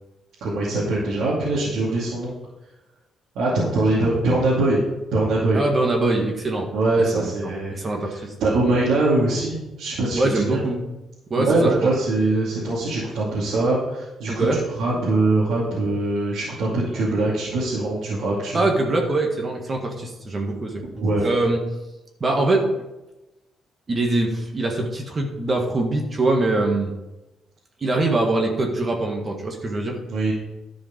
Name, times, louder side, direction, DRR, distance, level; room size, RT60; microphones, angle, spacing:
voice 1, 0.4-2.3 3.3-4.8 5.1-5.6 6.7-7.7 8.1-10.6 11.5-14.5 14.8-18.7 20.9-21.2 30.0-30.3, right 2 dB, 80° right, -7 dB, 2.5 m, -22 dB
voice 2, 5.5-6.7 7.1-8.3 10.1-10.8 11.3-11.9 14.3-14.6 18.5-20.8 21.2-21.6 22.2-22.7 23.9-26.9 27.8-30.0, right 2 dB, 35° right, 2 dB, 1.6 m, -23 dB
11.0 x 5.1 x 5.1 m, 0.99 s
cardioid pair, 90°, 0 cm